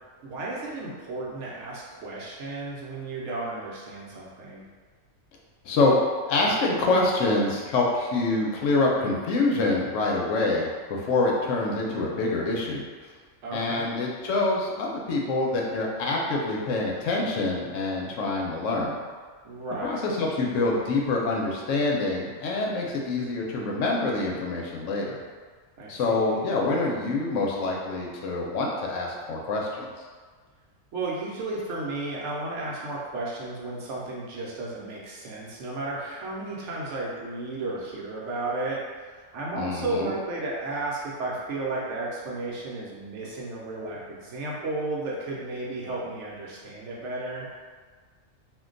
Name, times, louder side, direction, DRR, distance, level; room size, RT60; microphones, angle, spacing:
voice 1, 0.2-4.6 13.4-13.9 19.4-20.0 25.8-26.4 30.9-38.8 39.3-47.5, right 2 dB, 70° right, -4 dB, 0.9 m, -33 dB
voice 2, 6.3-12.8 13.5-19.0 19.8-25.2 25.9-29.9 39.5-40.1, left 3 dB, 80° left, -2 dB, 0.9 m, -26 dB
2.4 x 2.2 x 3.7 m, 1.5 s
omnidirectional pair, 1.3 m